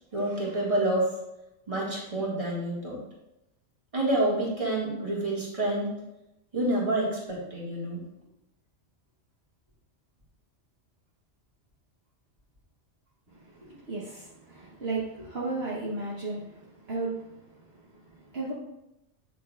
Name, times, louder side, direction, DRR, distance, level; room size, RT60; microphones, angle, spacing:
voice 1, 0.1-1.1 1.7-3.0 3.9-5.9 6.5-8.0, right 1 dB, 25° right, -5 dB, 1.9 m, -28 dB
voice 2, 13.3-18.5, right 3 dB, 55° right, -6 dB, 1.3 m, -35 dB
8.6 x 6.3 x 2.4 m, 0.89 s
omnidirectional pair, 1.3 m